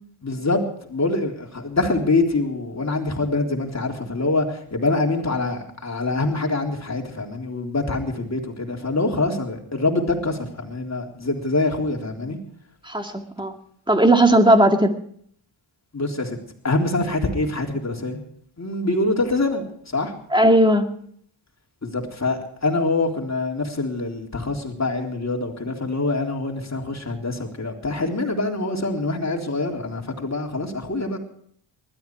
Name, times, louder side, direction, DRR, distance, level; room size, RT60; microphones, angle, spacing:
voice 1, 0.2-0.6 0.9-12.4 15.9-16.4 16.6-18.2 18.6-20.1 21.8-31.2, left 2 dB, 35° left, 1 dB, 3.7 m, -25 dB
voice 2, 12.8-13.5 13.9-14.9 20.3-20.9, right 1 dB, 10° right, 5 dB, 2.2 m, -16 dB
20.0 x 13.0 x 4.7 m, 0.63 s
cardioid pair, 70°, 49 cm